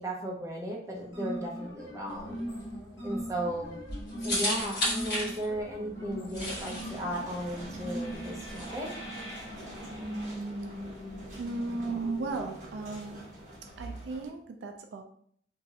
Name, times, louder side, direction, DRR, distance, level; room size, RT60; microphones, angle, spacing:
voice 1, 0.0-2.4 3.0-3.7 4.2-8.9, right 1 dB, 15° right, -2 dB, 0.5 m, -36 dB
sound 1, 1.0-10.2, equal, 90° left, 1.0 m, -40 dB
sound 2, 2.1-8.6, left 1 dB, 55° left, 1.5 m, -35 dB
sound 3, 6.3-14.3, right 1 dB, 40° right, 0.9 m, -42 dB
voice 2, 11.4-13.3 13.8-15.0, right 3 dB, 70° right, 5 dB, 0.3 m, -35 dB
3.0 x 2.5 x 2.7 m, 0.63 s
head